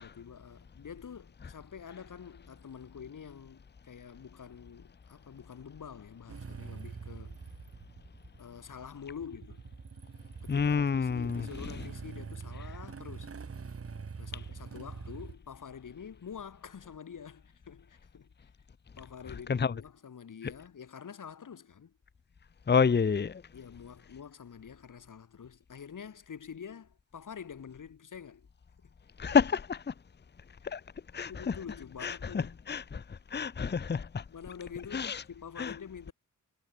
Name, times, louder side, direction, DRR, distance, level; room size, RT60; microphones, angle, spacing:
voice 1, 0.0-7.4 8.4-9.6 10.4-13.4 14.2-18.3 19.0-21.9 23.5-28.5 31.3-32.5 34.3-36.1, left 7 dB, 70° left, 2.6 m, -47 dB
Motorcycle / Engine starting, 6.3-15.4, right 5 dB, 45° right, 2.1 m, -44 dB
voice 2, 10.5-11.9 19.5-19.7 22.7-23.4 29.2-29.9 30.6-30.8 31.1-31.6 32.0-34.2 34.9-35.2 35.6-35.8, left 6 dB, 30° left, 0.8 m, -29 dB
wide cardioid pair, 145°, 33 cm